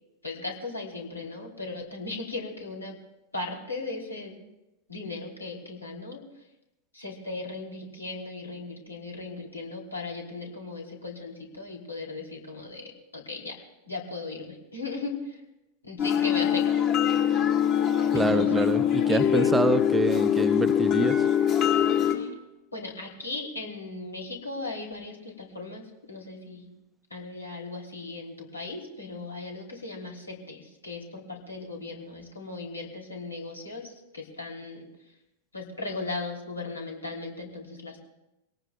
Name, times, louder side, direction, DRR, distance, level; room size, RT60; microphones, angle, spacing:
voice 1, 0.2-3.0 3.3-4.4 4.9-6.2 6.9-15.4 15.8-16.7 18.1-18.5 19.1-19.5 22.1-22.3 22.7-26.7 27.1-34.9 35.5-38.1, left 3 dB, 80° left, 0 dB, 3.2 m, -37 dB
sound 1, 16.0-22.2, left 9 dB, 35° left, 2.1 m, -23 dB
voice 2, 18.1-21.2, right 2 dB, 10° right, 11 dB, 0.7 m, -26 dB
23.5 x 18.0 x 2.4 m, 0.95 s
figure-of-eight pair, 90°, 0 cm